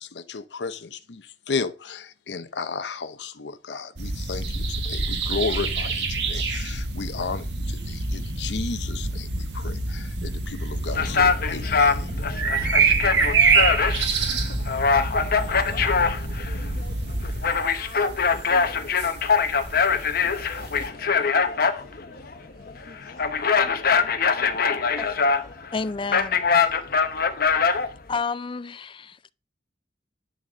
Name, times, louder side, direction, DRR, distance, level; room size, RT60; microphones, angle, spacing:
voice 1, 0.0-12.1, left 4 dB, 80° left, 0.7 m, -33 dB
sound 1, 4.0-20.9, right 4 dB, 80° right, 1.6 m, -27 dB
sound 2, 10.9-28.2, left 5 dB, 55° left, 1.0 m, -23 dB
voice 2, 18.4-26.0, left 2 dB, ahead, 2.1 m, -49 dB
voice 3, 25.7-26.4 28.1-29.3, left 4 dB, 30° left, 0.4 m, -30 dB
11.0 x 4.1 x 6.2 m
head